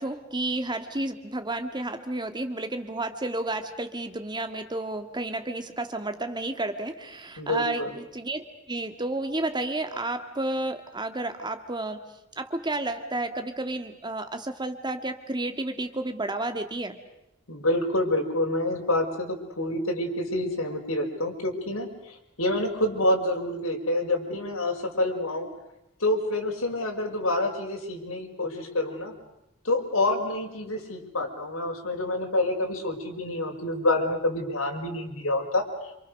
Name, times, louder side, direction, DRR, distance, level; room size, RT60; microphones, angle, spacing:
voice 1, 0.0-12.1 12.4-17.0, right 2 dB, 20° right, 7 dB, 1.9 m, -31 dB
voice 2, 7.4-7.9 17.5-25.5 26.0-29.1 29.6-35.6, left 1 dB, 70° left, 2 dB, 5.4 m, -27 dB
28.0 x 27.5 x 6.6 m, 0.86 s
head